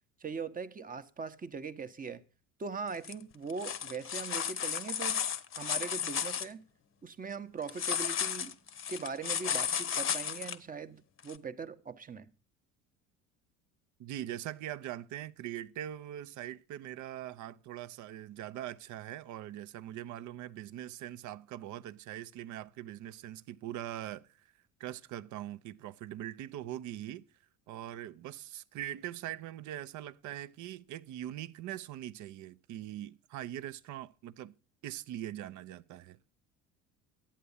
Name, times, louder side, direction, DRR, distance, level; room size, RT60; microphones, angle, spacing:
voice 1, 0.2-2.2 2.6-5.2 5.5-6.6 7.0-8.6 8.9-12.3, right 5 dB, 20° right, 0.9 m, -40 dB
sound 1, 2.9-3.1 3.5-6.5 7.7-10.6 11.3-11.4, left 8 dB, 30° left, 0.9 m, -34 dB
voice 2, 14.0-24.5 24.8-27.2 27.7-34.5 34.8-36.2, right 12 dB, 45° right, 0.7 m, -42 dB
11.0 x 8.6 x 5.5 m
figure-of-eight pair, 60°, 41 cm